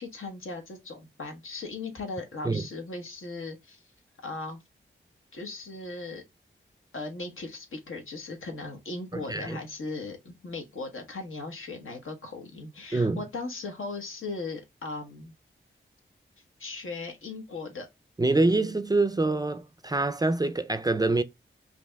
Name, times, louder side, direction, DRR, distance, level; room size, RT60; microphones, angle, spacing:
voice 1, 0.0-3.8 4.2-4.6 5.3-6.2 6.9-15.3 16.6-17.9, left 3 dB, 80° left, 1.1 m, -38 dB
voice 2, 9.1-9.6 12.9-13.2 18.2-21.2, right 2 dB, 20° right, 0.4 m, -25 dB
5.1 x 2.8 x 2.2 m
cardioid pair, 65°, 21 cm